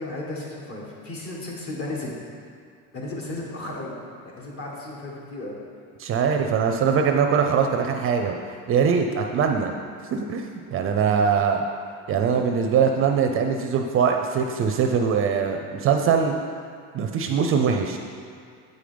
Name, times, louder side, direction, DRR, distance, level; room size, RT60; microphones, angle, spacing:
voice 1, 0.0-2.2 2.9-3.9 4.2-5.5, left 2 dB, 40° left, -3 dB, 1.7 m, -34 dB
voice 2, 6.0-8.3 8.7-9.8 10.1-11.6 12.1-16.3 16.9-18.0, right 6 dB, 40° right, 4 dB, 0.5 m, -22 dB
8.2 x 5.1 x 5.1 m, 2.3 s
cardioid pair, 145°, 34 cm